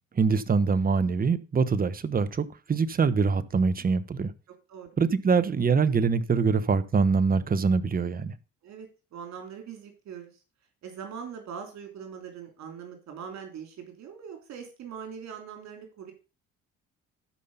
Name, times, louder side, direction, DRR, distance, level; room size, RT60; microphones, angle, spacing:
voice 1, 0.1-4.3 5.0-8.3, right 5 dB, 30° right, 1.0 m, -24 dB
voice 2, 8.6-10.4 10.8-16.1, right 7 dB, 65° right, 3.4 m, -42 dB
12.5 x 5.8 x 5.6 m
cardioid pair, 85°, 29 cm